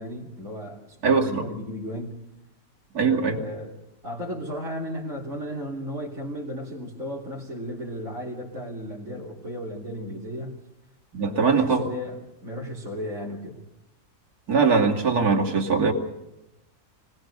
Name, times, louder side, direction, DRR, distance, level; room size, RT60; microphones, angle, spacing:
voice 1, 0.0-2.2 2.9-3.8 4.0-10.6 11.2-13.6, equal, 55° right, -7 dB, 3.8 m, -35 dB
voice 2, 1.0-1.5 2.9-3.4 11.1-11.9 14.5-15.9, right 5 dB, 80° right, 0 dB, 2.9 m, -21 dB
25.0 x 18.5 x 6.7 m, 0.91 s
omnidirectional pair, 1.6 m